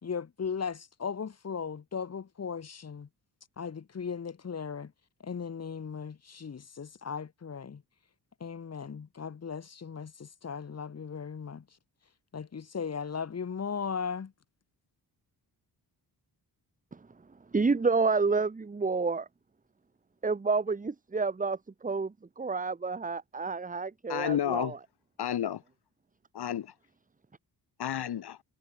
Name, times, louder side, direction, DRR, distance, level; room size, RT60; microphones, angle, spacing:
voice 1, 0.0-3.1 3.6-4.9 5.2-7.8 8.4-11.6 12.3-14.3, left 6 dB, 40° left, 6.1 m, -37 dB
voice 2, 17.5-19.3 20.2-24.8, right 4 dB, 20° right, 2.0 m, -29 dB
voice 3, 24.1-24.7 25.2-25.6 26.3-26.7 27.8-28.4, left 10 dB, 80° left, 7.4 m, -31 dB
wide cardioid pair, 165°, 39 cm